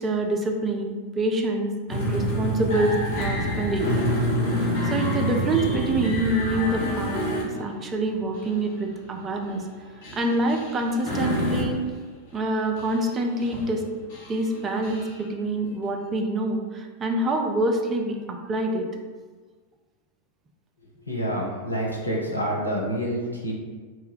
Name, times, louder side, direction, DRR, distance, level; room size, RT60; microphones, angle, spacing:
voice 1, 0.0-3.9 4.6-9.6 10.1-11.9 12.3-13.8 14.3-18.9, right 2 dB, 20° right, 3 dB, 0.3 m, -26 dB
sound 1, 1.9-7.9 8.3-8.5 8.9-9.1 10.0-11.8 12.3-12.4 12.8-13.1 13.4-13.8 14.1-15.2, equal, 45° left, 0.9 m, -27 dB
voice 2, 21.1-23.5, equal, 90° left, -3 dB, 0.6 m, -27 dB
2.6 x 2.1 x 3.7 m, 1.4 s
figure-of-eight pair, 90°, 0 cm